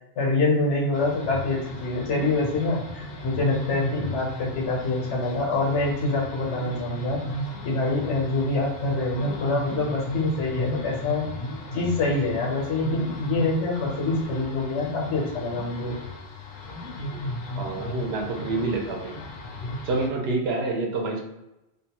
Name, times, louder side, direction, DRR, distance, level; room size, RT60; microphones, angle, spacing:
voice 1, 0.2-7.2 7.6-11.3 11.7-16.0, left 2 dB, 85° left, -2 dB, 1.2 m, -25 dB
sound 1, 0.9-20.1, left 1 dB, 70° left, 0.8 m, -35 dB
voice 2, 17.5-19.1 19.8-21.2, right 3 dB, 70° right, 1 dB, 0.8 m, -27 dB
2.6 x 2.2 x 2.8 m, 0.92 s
omnidirectional pair, 1.1 m